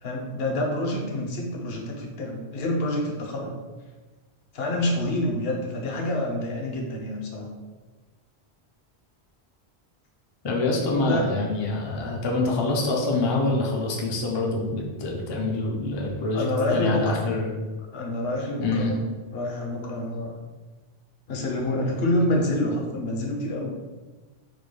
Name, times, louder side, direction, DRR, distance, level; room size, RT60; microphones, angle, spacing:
voice 1, 0.0-3.6 4.5-7.5 10.9-11.3 16.3-17.1 17.9-19.0 19.3-20.4 21.3-23.7, left 1 dB, 70° left, 1 dB, 0.9 m, -27 dB
voice 2, 10.4-17.5 18.6-18.9, left 2 dB, 45° left, -1 dB, 0.3 m, -26 dB
3.7 x 2.2 x 3.1 m, 1.3 s
omnidirectional pair, 1.1 m